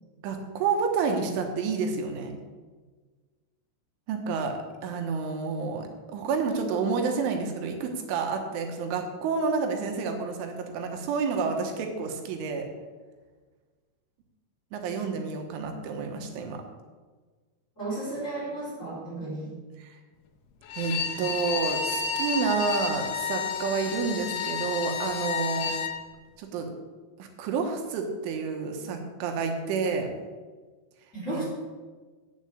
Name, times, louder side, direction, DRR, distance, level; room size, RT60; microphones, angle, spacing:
voice 1, 0.2-2.3 4.1-4.5 4.8-12.7 14.7-16.6 19.8-20.0 20.8-25.7 26.4-26.7 27.2-30.1 31.3-31.5, right 5 dB, 85° right, 3 dB, 3.7 m, -29 dB
voice 2, 17.8-19.5 31.1-31.5, right 2 dB, 15° left, -8 dB, 4.0 m, -33 dB
Bowed string instrument, 20.6-26.0, left 6 dB, 75° left, 2.5 m, -31 dB
8.5 x 8.0 x 8.5 m, 1.4 s
omnidirectional pair, 5.4 m